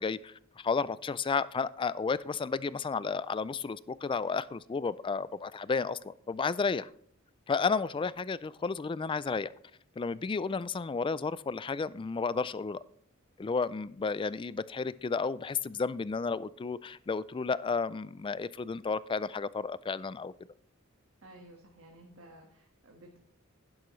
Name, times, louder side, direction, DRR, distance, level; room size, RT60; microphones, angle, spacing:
voice 1, 0.0-6.9 7.5-9.5 10.0-12.8 13.4-20.3, left 4 dB, 25° left, 18 dB, 0.3 m, -32 dB
voice 2, 21.2-23.2, right 1 dB, 70° right, 0 dB, 1.6 m, -54 dB
11.0 x 11.0 x 3.2 m, 0.63 s
head